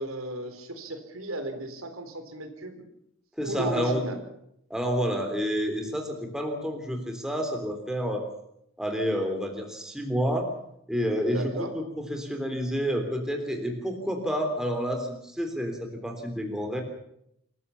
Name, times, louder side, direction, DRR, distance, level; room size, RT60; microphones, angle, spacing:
voice 1, 0.0-2.9 3.4-4.2 11.2-11.7, right 1 dB, 75° right, 7 dB, 3.7 m, -35 dB
voice 2, 3.4-4.1 4.7-8.3 8.8-10.5 10.9-16.8, equal, 5° right, 3 dB, 3.4 m, -29 dB
26.0 x 15.0 x 7.1 m, 0.75 s
head